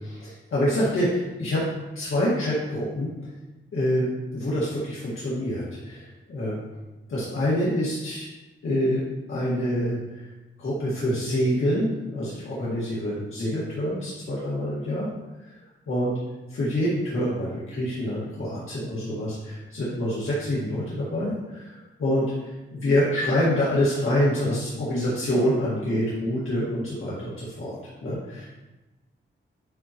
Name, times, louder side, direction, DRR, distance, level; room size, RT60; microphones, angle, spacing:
voice 1, 0.0-1.7 2.0-3.1 3.7-6.6 7.1-8.3 8.6-9.0 9.3-10.3 10.6-15.1 15.4-15.6 15.9-16.1 16.5-28.5, equal, 75° left, -8 dB, 1.9 m, -26 dB
9.7 x 5.5 x 3.0 m, 1.1 s
wide cardioid pair, 115°, 21 cm